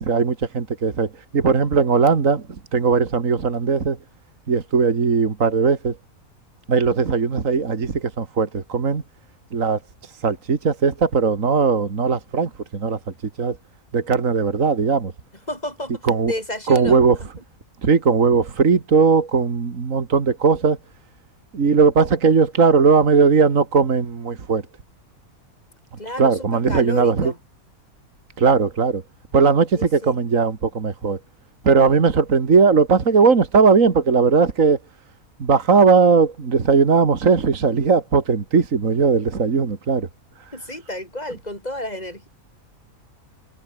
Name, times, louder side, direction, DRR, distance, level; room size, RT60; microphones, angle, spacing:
voice 1, 0.0-4.0 4.5-6.0 6.7-9.0 9.5-9.8 10.2-13.0 13.4-13.6 13.9-15.1 16.0-16.3 16.7-17.2 17.8-20.8 21.5-24.6 26.2-27.3 28.4-29.0 29.3-31.2 31.6-34.8 35.4-40.1, right 5 dB, 65° right, 2.4 m, -18 dB
voice 2, 15.5-17.0 26.0-27.4 29.7-30.2 39.6-39.7 40.5-42.3, left 1 dB, 30° left, 8.3 m, -31 dB
omnidirectional pair, 1.5 m